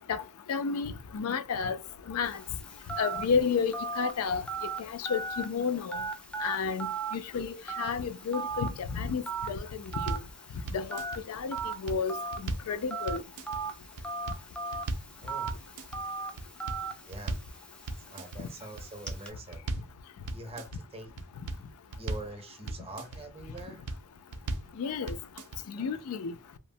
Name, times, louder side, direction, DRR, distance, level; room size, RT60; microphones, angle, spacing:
voice 1, 0.5-1.8 2.1-2.4 3.0-4.4 4.8-6.0 6.4-10.2 10.7-11.0 11.3-12.2 12.4-13.2 18.4-18.5 24.8-25.2 25.7-26.3, left 5 dB, 75° left, 0.4 m, -31 dB
Telephone, 2.2-19.3, right 4 dB, 5° left, 0.3 m, -39 dB
sound 1, 9.9-10.3 10.7-11.2 11.6-12.7 13.1-13.6 14.0-14.4 14.7-15.1 15.5-16.0 16.4-17.5 17.9-18.4 18.8-19.9 20.3-20.8 21.2-22.3 22.7-23.2 23.6-24.0 24.3-24.7 25.1-25.6, right 2 dB, 80° right, 0.4 m, -36 dB
voice 2, 15.2-15.6 17.1-17.4 18.0-19.6 20.2-21.1 22.0-23.8 25.8-26.0, right 2 dB, 25° right, 0.6 m, -44 dB
3.0 x 2.0 x 2.6 m
head